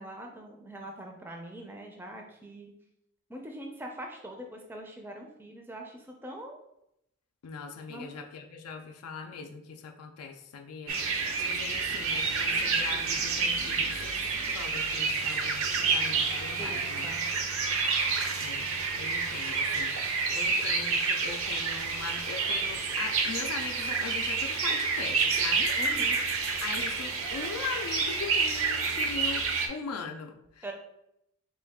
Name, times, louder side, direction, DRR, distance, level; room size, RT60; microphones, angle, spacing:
voice 1, 0.0-2.7 3.3-6.6 7.9-8.2 16.6-17.5 25.8-26.2 30.6-30.7, right 1 dB, 10° right, 2 dB, 0.4 m, -43 dB
voice 2, 7.4-17.1 18.4-18.7 18.9-25.7 26.6-30.7, left 5 dB, 80° left, 4 dB, 0.4 m, -40 dB
sound 1, 10.9-29.7, right 4 dB, 65° right, 0.5 m, -29 dB
3.7 x 2.3 x 3.4 m, 0.80 s
head